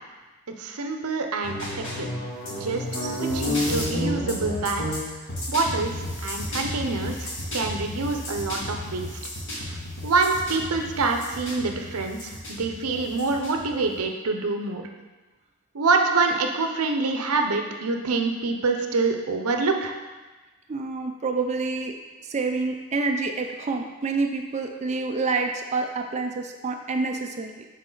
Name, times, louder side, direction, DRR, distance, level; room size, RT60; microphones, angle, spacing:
voice 1, 0.6-2.1 2.6-5.0 5.5-5.9 6.2-9.1 10.0-14.8 15.7-20.0, right 3 dB, 85° right, 4 dB, 0.7 m, -26 dB
sound 1, 1.4-14.0, left 1 dB, 55° left, 2.0 m, -31 dB
voice 2, 20.7-21.9 22.2-27.6, right 3 dB, 30° right, 3 dB, 0.4 m, -27 dB
7.3 x 4.1 x 3.9 m, 1.2 s
head